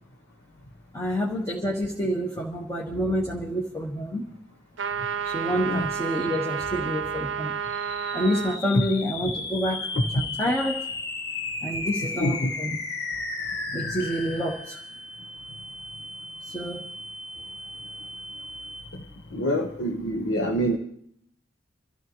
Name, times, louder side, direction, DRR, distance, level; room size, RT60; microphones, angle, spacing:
voice 1, 0.9-4.2 5.2-7.5 8.1-9.9 10.1-10.8 11.6-12.7 13.7-14.8 16.4-16.8, equal, 15° left, -2 dB, 1.3 m, -28 dB
sound 1, 4.8-8.6, right 7 dB, 80° right, 0.7 m, -30 dB
sound 2, 7.6-19.2, left 3 dB, 55° left, 1.7 m, -35 dB
voice 2, 19.3-20.8, equal, 70° left, 3 dB, 1.1 m, -26 dB
25.0 x 14.0 x 3.1 m, 0.68 s
head